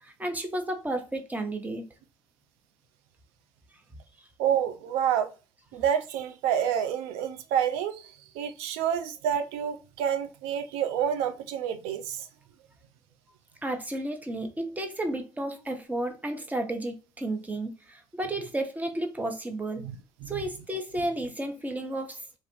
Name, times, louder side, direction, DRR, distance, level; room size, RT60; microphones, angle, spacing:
voice 1, 0.0-1.8 13.6-19.8 20.3-22.4, right 1 dB, 15° right, 0.9 m, -32 dB
voice 2, 4.4-5.3 5.7-12.3 19.8-20.0 20.2-20.4, right 9 dB, 80° right, 0.4 m, -28 dB
3.1 x 2.4 x 3.0 m
hypercardioid pair, 60°, 10 cm